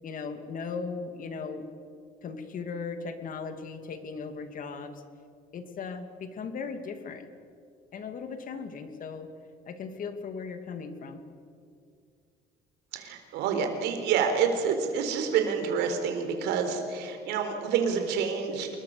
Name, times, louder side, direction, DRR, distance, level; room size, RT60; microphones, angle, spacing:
voice 1, 0.0-1.7 2.2-5.0 5.5-7.3 7.9-9.3 9.7-11.2, left 5 dB, 55° left, 7 dB, 2.6 m, -37 dB
voice 2, 12.9-18.7, right 6 dB, 85° right, 5 dB, 4.2 m, -28 dB
27.5 x 22.0 x 7.0 m, 2.3 s
cardioid pair, 110°, 17 cm